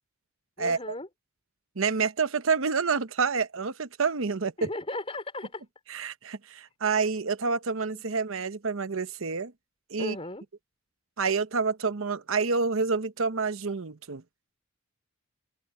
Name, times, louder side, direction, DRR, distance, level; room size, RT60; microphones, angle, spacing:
voice 1, 0.6-1.1 4.6-5.6 7.9-8.2 10.0-10.4, left 2 dB, 30° left, 3.8 m, -36 dB
voice 2, 1.8-4.7 5.9-9.5 9.9-10.2 11.2-14.2, right 4 dB, 70° right, 0.9 m, -28 dB
open air
head